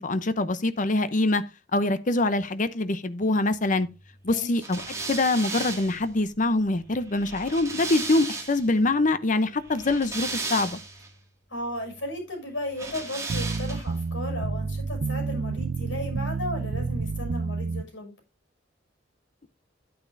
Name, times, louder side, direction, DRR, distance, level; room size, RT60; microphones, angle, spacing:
voice 1, 0.0-1.4 1.7-3.9 4.2-4.8 5.1-10.8, left 2 dB, 45° left, 0.7 m, -24 dB
voice 2, 4.3-4.7 11.5-18.1, left 1 dB, 80° left, 6.3 m, -35 dB
sound 1, 4.6-8.7 9.6-11.1 12.7-14.0, right 3 dB, 15° right, 2.1 m, -35 dB
sound 2, 13.3-17.8, right 4 dB, 60° right, 0.4 m, -29 dB
10.5 x 9.1 x 2.6 m
head